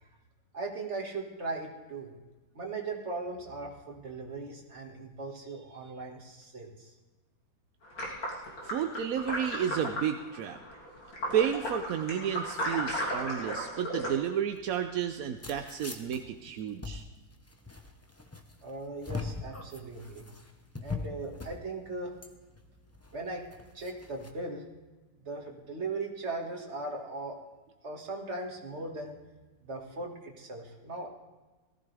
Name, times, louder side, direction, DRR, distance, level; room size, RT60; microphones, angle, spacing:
voice 1, 0.5-2.1 2.5-6.9 18.6-20.2 20.8-22.1 23.1-23.5 23.7-24.7 25.2-27.4 27.8-29.2 29.6-31.1, right 3 dB, 35° right, 0 dB, 2.1 m, -38 dB
sound 1, 7.8-14.1, equal, 75° left, 3.9 m, -35 dB
voice 2, 8.6-10.6 11.3-17.0, right 9 dB, 65° right, 7 dB, 0.9 m, -31 dB
sound 2, 14.5-24.3, left 3 dB, 15° left, 0.5 m, -42 dB
18.5 x 14.5 x 3.4 m, 1.2 s
omnidirectional pair, 2.1 m